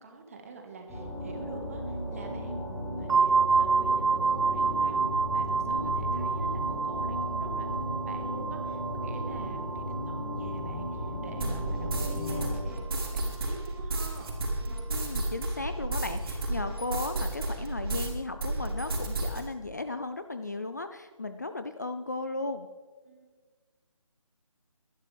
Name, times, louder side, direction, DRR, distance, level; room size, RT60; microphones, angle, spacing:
voice 1, 0.0-5.0 5.3-14.3 23.0-23.3, right 3 dB, 25° right, 4 dB, 1.6 m, -46 dB
sound 1, 0.9-12.5, equal, 10° left, 5.0 m, -35 dB
sound 2, 3.1-12.7, right 5 dB, 65° right, 0.5 m, -29 dB
sound 3, 11.4-18.1 18.4-19.4, right 2 dB, 40° right, 3.7 m, -32 dB
voice 2, 14.9-22.7, left 2 dB, 30° left, 9 dB, 0.4 m, -36 dB
23.0 x 11.0 x 3.4 m, 1.4 s
figure-of-eight pair, 165°, 18 cm